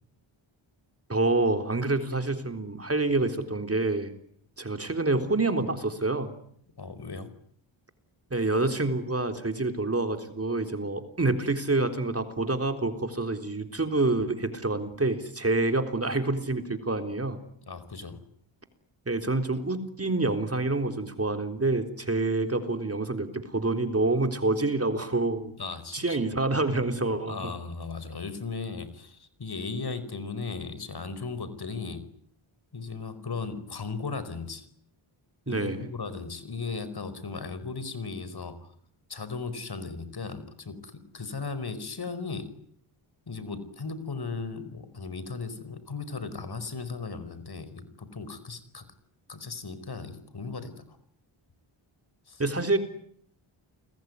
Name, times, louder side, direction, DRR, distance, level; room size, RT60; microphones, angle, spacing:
voice 1, 1.1-4.1 4.6-6.4 8.3-17.4 19.1-25.5 25.9-27.5 35.5-35.9 52.4-52.8, right 2 dB, 30° right, 7 dB, 3.7 m, -27 dB
voice 2, 6.8-7.3 17.7-18.2 25.6-26.2 27.3-32.0 32.7-34.6 35.5-38.5 39.1-42.5 43.3-48.9 49.3-51.0 52.3-52.4, left 4 dB, 50° left, 14 dB, 5.1 m, -36 dB
29.5 x 21.0 x 9.6 m, 0.65 s
cardioid pair, 75°, 50 cm